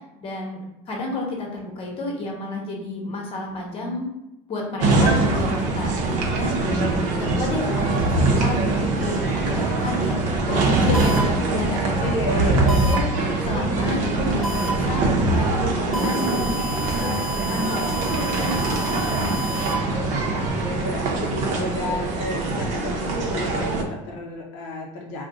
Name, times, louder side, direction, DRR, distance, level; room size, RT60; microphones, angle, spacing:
voice 1, 0.2-0.6 0.9-4.1 4.5-6.7 7.1-13.0 13.4-15.0 15.3-16.6 16.9-19.9, left 2 dB, 40° left, -1 dB, 1.0 m, -31 dB
sound 1, 4.8-23.8, right 2 dB, 55° right, 0.6 m, -23 dB
sound 2, 10.9-11.2 12.7-12.9 14.4-14.7 15.9-19.7, right 1 dB, ahead, 0.8 m, -31 dB
voice 2, 12.0-12.8 20.3-25.3, left 2 dB, 85° left, -1 dB, 0.5 m, -32 dB
2.5 x 2.1 x 3.7 m, 0.93 s
supercardioid pair, 110°, 15 cm